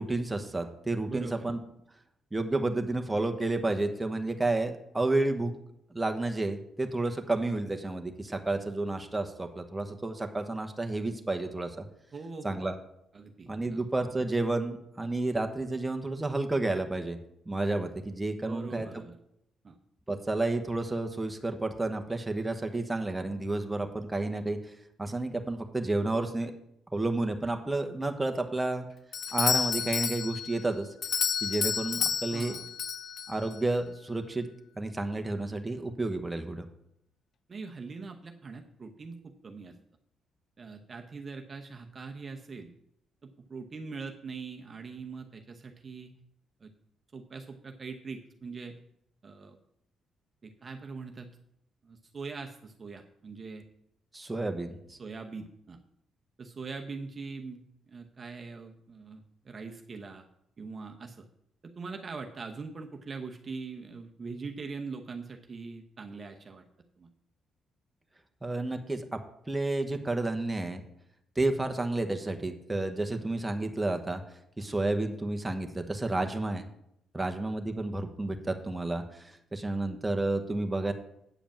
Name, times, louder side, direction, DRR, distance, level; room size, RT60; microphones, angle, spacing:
voice 1, 0.0-1.6 2.3-5.5 5.9-11.8 12.4-12.8 13.5-17.2 17.5-18.9 20.1-24.6 25.0-26.5 26.9-28.9 29.3-30.9 31.4-32.5 33.3-34.5 34.8-36.6 54.1-55.0 68.4-69.2 69.5-70.8 71.4-74.2 74.6-76.7 77.1-80.9, right 2 dB, 15° right, 5 dB, 1.1 m, -31 dB
voice 2, 1.1-1.4 12.1-12.6 13.1-13.8 18.4-19.2 19.6-19.8 32.3-32.6 37.5-39.8 40.6-42.7 43.2-46.2 46.6-46.7 47.1-48.8 49.2-49.6 50.4-51.4 51.8-53.6 54.3-54.4 55.0-55.8 56.4-60.2 60.6-61.2 61.6-66.6 67.0-67.1, right 4 dB, 40° right, 4 dB, 0.9 m, -42 dB
Doorbell, 29.1-33.6, left 7 dB, 60° left, 0.4 m, -31 dB
8.9 x 5.0 x 7.2 m, 0.76 s
cardioid pair, 90°, 0 cm